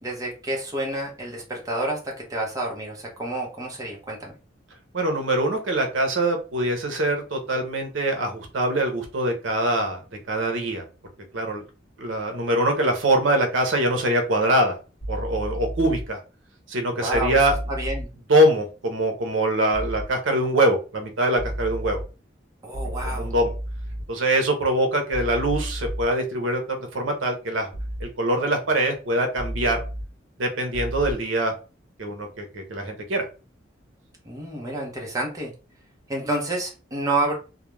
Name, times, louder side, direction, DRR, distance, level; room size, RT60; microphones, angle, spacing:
voice 1, 0.0-4.3 16.9-17.4 17.7-18.1 22.6-23.3 34.3-35.5 36.1-37.3, right 2 dB, 20° right, -1 dB, 0.6 m, -29 dB
voice 2, 4.9-10.0 10.3-10.8 11.3-11.6 12.0-14.8 15.1-16.2 16.7-17.5 18.3-22.0 23.1-23.5 24.1-27.7 28.0-29.8 30.4-31.5 32.0-33.3, right 1 dB, 85° right, 4 dB, 0.7 m, -23 dB
sound 1, 15.0-16.0 17.1-18.0 19.7-20.0 21.4-22.0 22.7-24.0 25.1-26.0 27.7-28.0 29.4-30.0 30.7-31.1, right 1 dB, 35° left, 0.9 m, -31 dB
2.3 x 2.1 x 3.0 m, 0.33 s
head